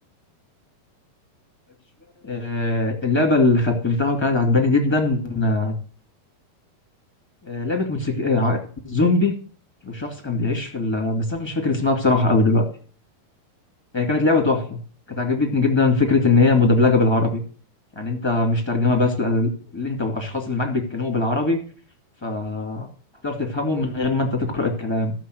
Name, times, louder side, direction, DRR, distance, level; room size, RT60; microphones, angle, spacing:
voice 1, 2.2-5.7 7.4-9.3 9.8-12.6 13.9-14.8 15.1-17.4 17.9-21.6 22.2-22.9 23.2-25.1, left 3 dB, 10° left, 2 dB, 1.4 m, -21 dB
13.5 x 7.0 x 6.3 m, 0.42 s
omnidirectional pair, 4.4 m